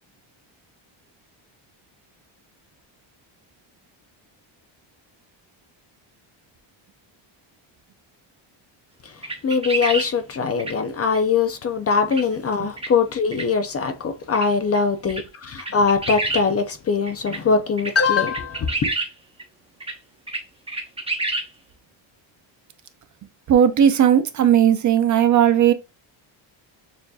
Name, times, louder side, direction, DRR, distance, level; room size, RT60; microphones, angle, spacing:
sound 1, 9.2-10.1 10.6-10.7 11.1-11.2 12.1-12.2 12.8-12.9 13.3-13.4 14.3-14.5 14.7-14.8 15.1-15.2 15.6-16.4 17.1-17.4 17.8-17.9 18.3-19.1 19.4-19.5 19.8-19.9 20.3-20.4 20.7-21.5, right 2 dB, 10° right, 0.9 m, -27 dB
voice 1, 9.4-18.9, left 5 dB, 35° left, 0.4 m, -22 dB
voice 2, 23.5-25.7, right 9 dB, 40° right, 0.4 m, -16 dB
6.7 x 2.7 x 2.3 m
cardioid pair, 140°, 48 cm